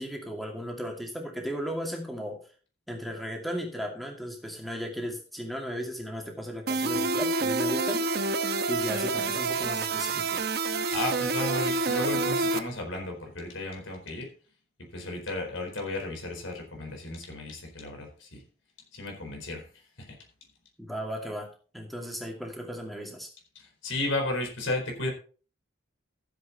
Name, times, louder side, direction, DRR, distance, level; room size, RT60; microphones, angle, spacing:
voice 1, 0.0-2.4 2.9-8.4 8.7-10.4 20.8-21.5 21.7-23.3, equal, ahead, 1 dB, 2.4 m, -35 dB
sound 1, 6.7-12.6, right 3 dB, 50° right, 1.0 m, -28 dB
voice 2, 10.9-14.3 14.9-18.4 18.9-19.7 20.0-20.2 23.5-25.1, left 2 dB, 80° left, 3 dB, 4.4 m, -34 dB
14.5 x 7.8 x 4.2 m, 0.39 s
head